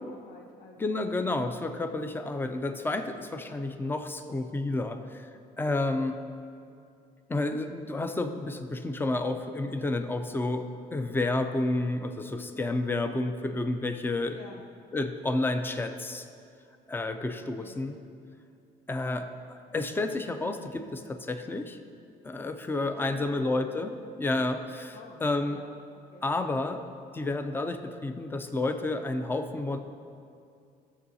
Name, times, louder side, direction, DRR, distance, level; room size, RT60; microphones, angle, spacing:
voice 1, 0.0-1.1 14.3-14.7 17.6-17.8 23.0-23.7 24.9-26.3, left 4 dB, 50° left, 0 dB, 0.8 m, -50 dB
voice 2, 0.8-5.3 5.6-6.2 7.3-14.4 14.9-16.3 16.9-18.0 18.9-21.8 22.2-25.0 25.2-25.6 26.2-26.8 27.1-29.8, left 2 dB, 10° left, 8 dB, 0.5 m, -30 dB
13.5 x 7.0 x 2.8 m, 2.5 s
cardioid pair, 110°, 17 cm